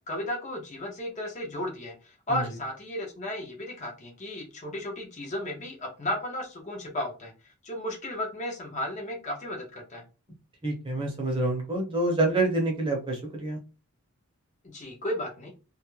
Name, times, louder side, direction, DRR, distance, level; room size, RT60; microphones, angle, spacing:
voice 1, 0.1-10.0 14.6-15.5, left 1 dB, 35° left, 1 dB, 0.5 m, -34 dB
voice 2, 10.6-13.6, right 2 dB, 25° right, 0 dB, 0.7 m, -27 dB
2.3 x 2.0 x 2.9 m, 0.31 s
head